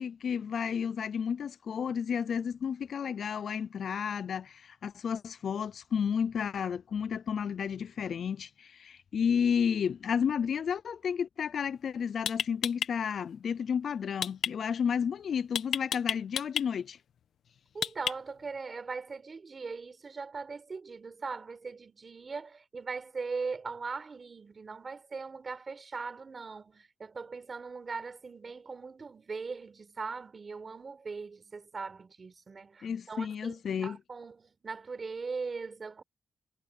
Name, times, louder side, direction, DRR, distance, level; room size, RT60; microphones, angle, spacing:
voice 1, 0.0-17.0 32.8-34.0, left 7 dB, 45° left, 0.4 m, -32 dB
sound 1, 11.6-11.8 12.3-12.9 14.2-14.5 15.5-16.7 17.8-18.4, left 9 dB, 65° left, 1.5 m, -31 dB
voice 2, 17.7-36.0, right 4 dB, 30° right, 4.4 m, -40 dB
wide cardioid pair, 170°, 0 cm